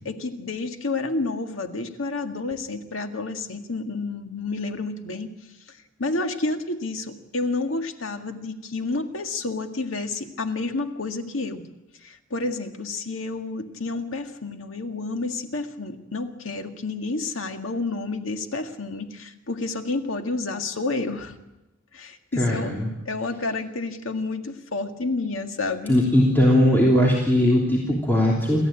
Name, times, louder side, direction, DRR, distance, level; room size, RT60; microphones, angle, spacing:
voice 1, 0.1-5.3 5.7-11.7 12.0-21.4 21.9-22.8 23.1-26.0, left 3 dB, 90° left, 6 dB, 2.0 m, -30 dB
voice 2, 22.3-22.9 25.9-28.7, left 1 dB, 10° left, -4 dB, 3.2 m, -19 dB
28.0 x 14.0 x 8.9 m, 0.99 s
head